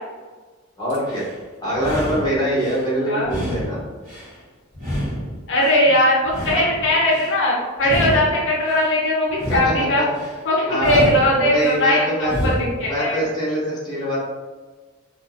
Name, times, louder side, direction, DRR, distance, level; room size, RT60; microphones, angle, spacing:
voice 1, 0.8-1.3 1.6-3.8 9.6-10.1 10.7-11.0 11.4-12.5 12.8-14.2, equal, 20° left, -8 dB, 1.0 m, -24 dB
sound 1, 0.9-1.4 1.7-2.9 3.2-4.4 4.7-5.8 6.2-7.3 7.8-8.9 9.3-10.4 10.8-11.8 12.2-12.9, equal, 40° right, 1.2 m, -28 dB
voice 2, 5.5-10.0 10.5-13.2, left 1 dB, 60° left, -4 dB, 0.5 m, -19 dB
2.6 x 2.4 x 2.5 m, 1.4 s
head